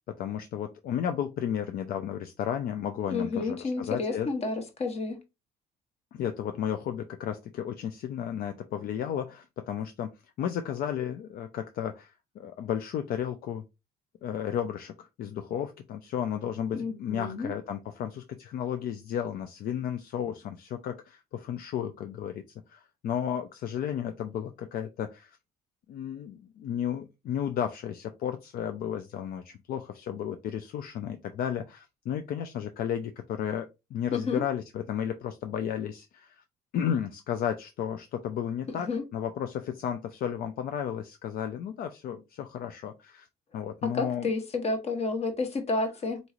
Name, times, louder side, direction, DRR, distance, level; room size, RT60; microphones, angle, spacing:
voice 1, 0.1-4.3 6.1-10.1 10.4-13.6 14.2-22.4 22.7-25.4 25.9-36.4 36.7-43.3 43.5-44.3, left 9 dB, 60° left, 0.5 m, -33 dB
voice 2, 3.1-5.2 16.7-17.5 34.1-34.4 38.8-39.0 43.8-46.2, left 3 dB, 40° left, 1.1 m, -30 dB
4.0 x 2.9 x 2.4 m
cardioid pair, 110°, 17 cm